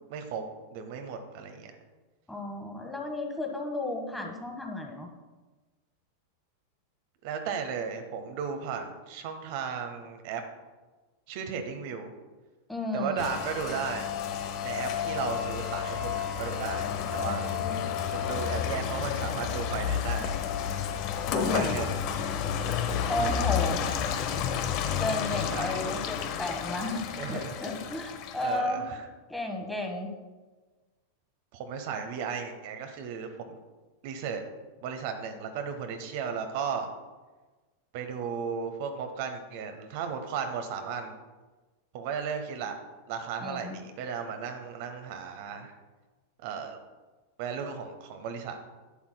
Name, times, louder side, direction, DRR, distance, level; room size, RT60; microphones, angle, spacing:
voice 1, 0.1-0.4 0.7-1.7 7.2-10.4 11.3-12.1 12.9-14.1 14.6-17.5 18.1-20.3 21.3-22.0 25.4-25.8 27.2-27.5 28.4-29.0 31.5-33.6 34.0-34.4 34.8-36.9 37.9-41.1 41.9-42.7 43.1-45.7 46.4-46.8 47.4-48.6, right 6 dB, 50° right, 6 dB, 0.8 m, -35 dB
voice 2, 2.3-5.1 12.7-13.3 17.2-17.8 21.4-21.8 23.1-23.8 24.8-28.8 29.3-30.1 43.4-43.8, left 2 dB, 5° left, 2 dB, 1.2 m, -33 dB
Rain, 13.2-28.6, left 8 dB, 40° left, 0.7 m, -31 dB
11.5 x 8.6 x 2.2 m, 1.2 s
figure-of-eight pair, 90°, 0 cm